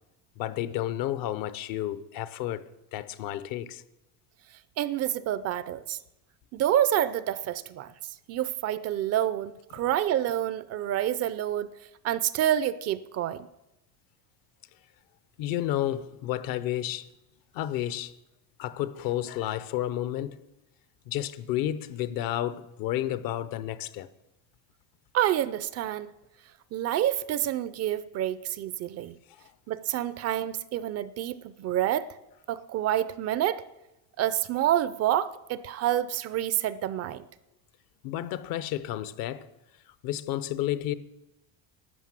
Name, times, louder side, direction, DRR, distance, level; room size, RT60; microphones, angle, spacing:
voice 1, 0.4-3.8 15.4-17.1 17.5-18.1 18.6-20.4 21.1-24.1 38.0-39.5 40.0-40.9, left 13 dB, 60° left, 0.8 m, -31 dB
voice 2, 4.8-6.0 6.5-7.9 8.3-11.7 12.0-13.5 25.1-26.1 26.7-29.2 29.7-32.1 32.5-33.6 34.2-37.2, right 12 dB, 40° right, 0.5 m, -28 dB
12.5 x 9.1 x 7.5 m
cardioid pair, 145°, 40 cm